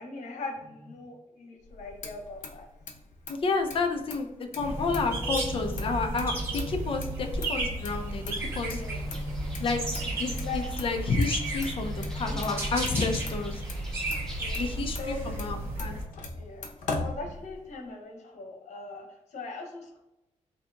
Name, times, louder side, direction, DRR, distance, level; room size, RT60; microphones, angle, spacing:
voice 1, 0.0-2.7 8.7-9.0 10.4-10.6 12.2-12.7 14.4-15.6 16.3-20.0, left 3 dB, 65° left, 1 dB, 1.2 m, -41 dB
Motor vehicle (road), 1.6-17.9, left 3 dB, 80° left, 0.8 m, -42 dB
voice 2, 3.3-4.3 4.6-8.2 8.6-8.8 9.6-13.6 14.5-15.9, left 4 dB, 45° left, 5 dB, 0.6 m, -30 dB
sound 1, 4.6-16.0, right 1 dB, 20° right, 1.3 m, -33 dB
sound 2, 8.4-14.8, equal, 5° left, 0.5 m, -44 dB
3.9 x 2.8 x 3.5 m, 0.91 s
wide cardioid pair, 155°, 13 cm